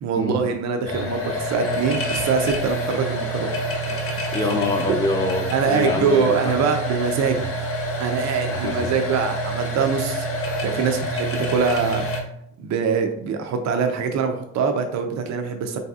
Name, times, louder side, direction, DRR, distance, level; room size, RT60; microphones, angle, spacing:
voice 1, 0.0-3.5 5.5-7.4 8.0-10.3 10.6-12.0 12.6-15.8, right 6 dB, 65° right, 5 dB, 0.5 m, -23 dB
sound 1, 0.8-12.2, equal, 45° left, 0.8 m, -27 dB
voice 2, 4.3-6.5 8.5-8.9, left 2 dB, 15° left, 1 dB, 0.6 m, -25 dB
3.3 x 2.7 x 2.3 m, 0.69 s
cardioid pair, 90°, 30 cm